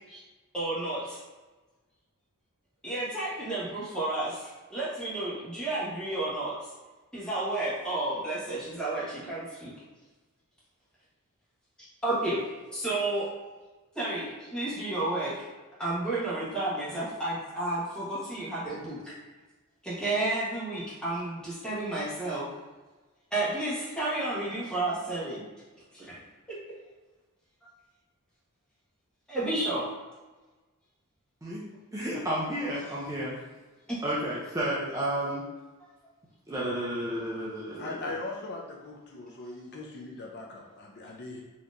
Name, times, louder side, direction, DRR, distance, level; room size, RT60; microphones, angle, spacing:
voice 1, 0.5-1.2 2.8-4.4 4.7-6.5 7.1-9.7 12.0-12.4 12.7-13.3 13.9-15.4 15.8-19.1 19.8-22.5 23.3-25.4 25.9-26.2 29.3-29.8 33.9-34.0 36.6-36.7, right 2 dB, 5° left, -9 dB, 1.3 m, -31 dB
voice 2, 31.9-33.3 34.0-35.4 36.5-38.0, right 1 dB, 15° right, -6 dB, 0.5 m, -31 dB
voice 3, 37.8-41.4, left 2 dB, 50° left, -1 dB, 0.5 m, -40 dB
4.2 x 2.9 x 2.5 m, 1.3 s
head